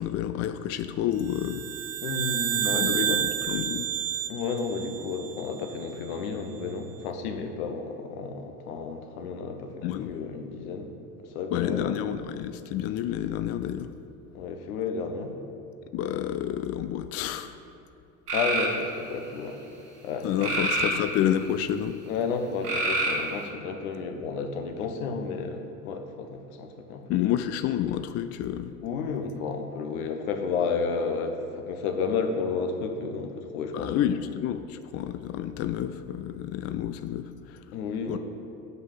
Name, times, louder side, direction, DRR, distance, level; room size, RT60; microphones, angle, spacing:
voice 1, 0.0-1.7 2.7-3.9 9.8-10.1 11.5-13.9 15.9-17.6 20.2-22.0 27.1-28.7 33.7-37.6 38.1-38.2, left 11 dB, 35° left, 10 dB, 0.4 m, -29 dB
sound 1, 1.3-5.8, right 11 dB, 35° right, 0.5 m, -30 dB
voice 2, 2.0-3.2 4.3-10.9 11.3-12.0 14.3-15.3 18.3-19.6 20.0-20.5 22.0-27.2 28.8-34.1 37.7-38.2, left 5 dB, 70° left, 5 dB, 1.1 m, -32 dB
sound 2, 18.3-18.7 20.4-21.5 22.6-23.5, right 2 dB, 85° right, 1.5 m, -27 dB
7.9 x 5.5 x 7.5 m, 2.8 s
figure-of-eight pair, 60°, 45 cm